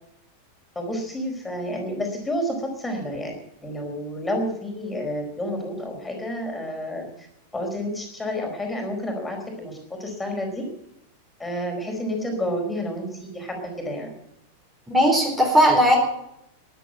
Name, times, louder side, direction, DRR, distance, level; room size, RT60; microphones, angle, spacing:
voice 1, 0.7-3.3 3.6-7.3 7.5-10.7 11.4-14.1, equal, 10° left, 2 dB, 4.5 m, -30 dB
voice 2, 14.9-16.0, equal, 10° right, 0 dB, 4.1 m, -17 dB
14.0 x 11.5 x 8.9 m, 0.80 s
figure-of-eight pair, 90°, 0 cm